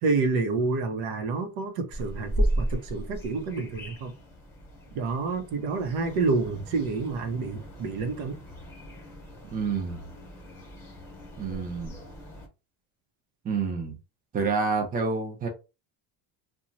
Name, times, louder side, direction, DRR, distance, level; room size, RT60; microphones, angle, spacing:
voice 1, 0.0-4.1 4.9-8.4, right 4 dB, 70° right, 0.9 m, -28 dB
sound 1, 1.9-12.5, right 1 dB, 5° left, 1.0 m, -35 dB
voice 2, 9.5-10.0 11.4-12.0 13.4-13.9 14.3-15.5, right 4 dB, 20° right, 0.6 m, -28 dB
2.9 x 2.3 x 2.6 m
cardioid pair, 125°, 50 cm